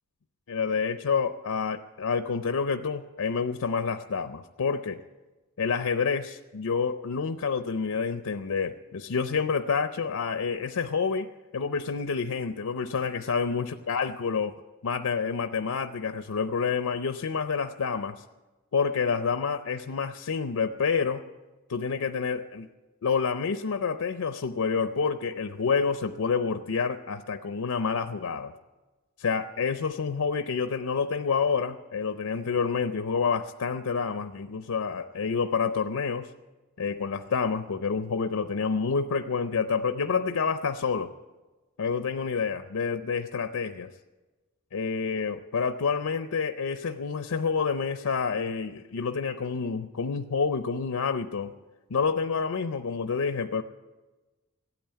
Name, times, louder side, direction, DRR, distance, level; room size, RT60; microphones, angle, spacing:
voice 1, 0.5-5.0 5.6-14.5 14.8-18.2 18.7-21.2 21.7-22.7 23.0-28.5 29.2-36.3 36.8-41.1 41.8-43.9 44.7-51.5 51.9-53.6, left 5 dB, 70° left, 9 dB, 0.6 m, -28 dB
16.0 x 9.1 x 8.8 m, 1.2 s
head